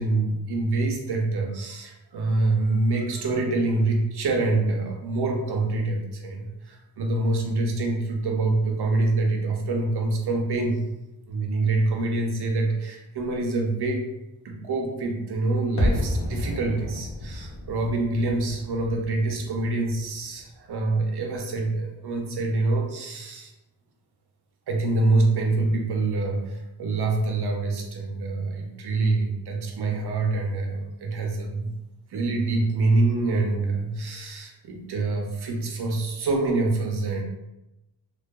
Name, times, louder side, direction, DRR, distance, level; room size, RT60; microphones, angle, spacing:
voice 1, 0.0-10.8 11.3-14.1 14.4-23.5 24.7-31.7 32.1-37.2, right 2 dB, 75° right, 2 dB, 0.5 m, -25 dB
sound 1, 15.8-20.7 21.0-21.1, left 1 dB, 75° left, 0.7 m, -31 dB
2.6 x 2.2 x 2.2 m, 0.94 s
wide cardioid pair, 165°, 39 cm